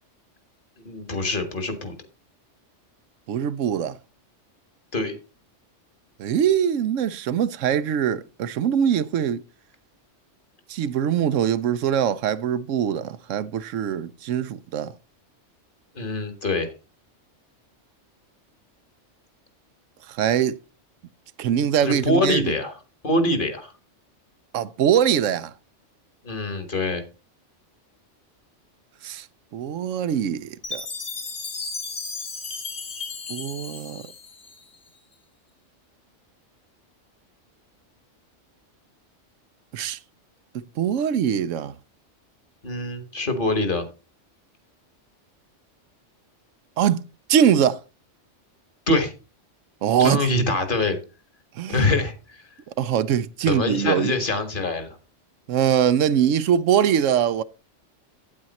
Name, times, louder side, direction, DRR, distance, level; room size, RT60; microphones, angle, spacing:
voice 1, 0.8-1.9 4.9-5.2 15.9-16.7 21.8-22.7 23.0-23.7 26.2-27.0 42.6-43.9 48.9-49.1 50.0-51.0 51.7-52.1 53.4-55.0, left 2 dB, 45° left, 1.7 m, -24 dB
voice 2, 3.3-4.0 6.2-9.4 10.7-14.9 20.1-20.6 21.4-22.5 24.5-25.5 29.0-29.3 29.5-30.9 33.3-34.0 39.7-40.0 40.5-41.7 46.8-47.0 47.3-47.8 49.8-50.5 51.6-51.9 52.8-54.1 55.5-57.4, right 9 dB, 85° right, 1.0 m, -22 dB
Chime, 30.6-34.9, left 4 dB, 60° left, 1.9 m, -34 dB
8.8 x 8.8 x 4.1 m
omnidirectional pair, 1.3 m